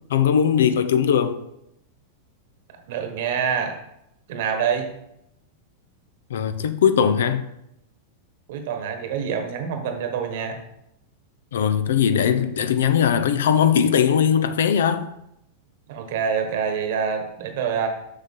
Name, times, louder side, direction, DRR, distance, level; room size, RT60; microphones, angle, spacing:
voice 1, 0.1-1.4 6.3-7.5 11.5-15.1, left 8 dB, 85° left, 0.6 m, -20 dB
voice 2, 2.9-3.7 4.3-4.9 8.5-10.6 15.9-17.9, right 7 dB, 65° right, 1.3 m, -26 dB
6.6 x 5.8 x 3.7 m
hypercardioid pair, 125°, 0 cm